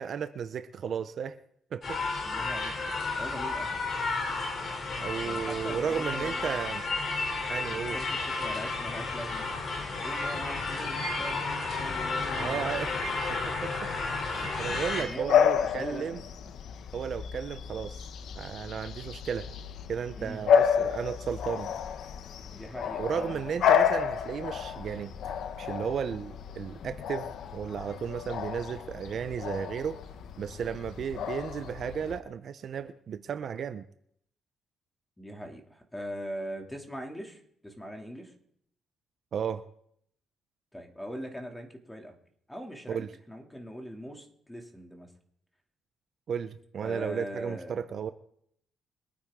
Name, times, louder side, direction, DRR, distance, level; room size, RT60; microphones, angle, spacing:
voice 1, 0.0-1.4 1.7-2.0 5.0-6.8 7.5-8.0 12.4-12.9 13.3-13.9 14.3-16.2 16.9-18.1 18.4-19.5 19.9-21.7 23.0-25.1 25.6-30.0 30.4-33.9 39.3-39.6 42.9-43.1 46.3-48.1, right 7 dB, 60° right, 11 dB, 0.7 m, -34 dB
sound 1, 1.8-15.0, left 3 dB, 50° left, 3.3 m, -32 dB
voice 2, 2.2-2.7 3.1-3.7 5.2-6.7 7.7-9.5 10.0-12.7 14.9-16.3 20.2-20.5 22.5-23.6 35.2-38.3 40.7-42.2 42.5-45.1 46.8-47.9, equal, 10° left, 2 dB, 2.7 m, -41 dB
Bark / Bird vocalization bird call bird song, 14.6-32.2, left 8 dB, 70° left, 0.9 m, -30 dB
23.5 x 9.6 x 3.7 m, 0.68 s
cardioid pair, 90°, 0 cm